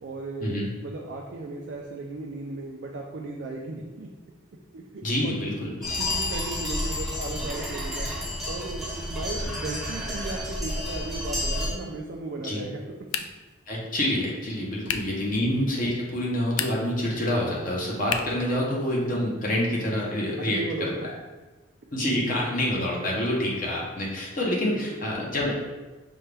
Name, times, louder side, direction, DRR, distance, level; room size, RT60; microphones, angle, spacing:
voice 1, 0.0-4.1 4.7-5.3 6.0-8.1 8.5-12.8 14.8-14.9 15.3-15.4 20.4-21.1 24.7-24.8, right 2 dB, 55° right, -1 dB, 0.4 m, -36 dB
voice 2, 5.0-5.9 12.4-12.6 13.7-20.6 21.0-21.1 21.9-25.5, left 1 dB, 40° left, -3 dB, 0.8 m, -27 dB
sound 1, 5.8-11.7, left 1 dB, ahead, 0.8 m, -30 dB
sound 2, 13.1-13.6 14.8-15.2 16.4-17.0 18.1-18.5, left 8 dB, 80° left, 0.3 m, -31 dB
5.3 x 2.3 x 3.3 m, 1.2 s
head